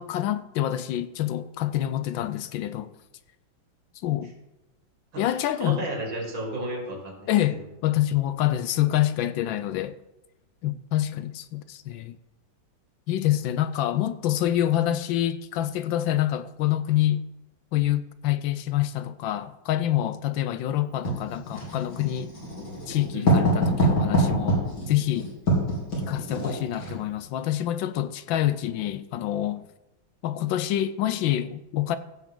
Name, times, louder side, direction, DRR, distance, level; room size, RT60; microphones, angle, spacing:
voice 1, 0.0-2.9 4.0-4.3 5.2-5.9 7.3-10.0 10.6-12.2 13.1-17.3 17.7-22.3 22.9-25.3 26.1-29.7 30.2-32.0, left 12 dB, 75° left, 1.3 m, -26 dB
voice 2, 5.1-7.6 23.1-23.4, right 1 dB, 70° right, 3.0 m, -34 dB
Writing, 21.0-27.0, right 1 dB, 60° left, 3.8 m, -25 dB
15.5 x 7.2 x 3.7 m
omnidirectional pair, 2.2 m